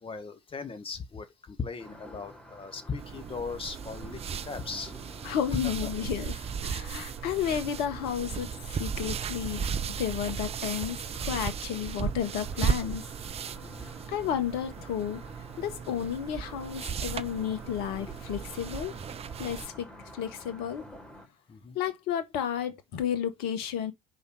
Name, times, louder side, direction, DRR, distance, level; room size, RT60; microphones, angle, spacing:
voice 1, 0.0-4.9 5.5-5.9 6.2-6.4 13.6-13.9 21.5-21.8, left 4 dB, 30° left, 2.0 m, -38 dB
sound 1, 1.8-21.3, left 1 dB, 5° left, 3.4 m, -50 dB
sound 2, 3.0-19.7, right 7 dB, 35° right, 0.6 m, -36 dB
voice 2, 5.2-6.3 6.6-13.0 14.1-15.2 15.6-18.9 19.4-19.9 20.1-20.8 21.7-23.9, left 9 dB, 65° left, 1.5 m, -32 dB
5.3 x 4.8 x 6.4 m
figure-of-eight pair, 55°, 18 cm